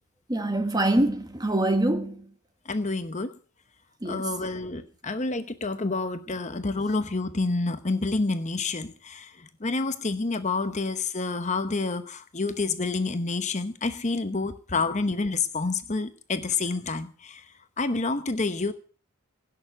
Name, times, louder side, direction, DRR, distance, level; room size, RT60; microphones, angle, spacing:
voice 1, 0.3-2.2 4.0-4.3, right 1 dB, 15° right, 1.3 m, -25 dB
voice 2, 2.6-3.3 4.0-18.7, left 3 dB, 30° left, 0.9 m, -28 dB
17.0 x 6.8 x 9.1 m
head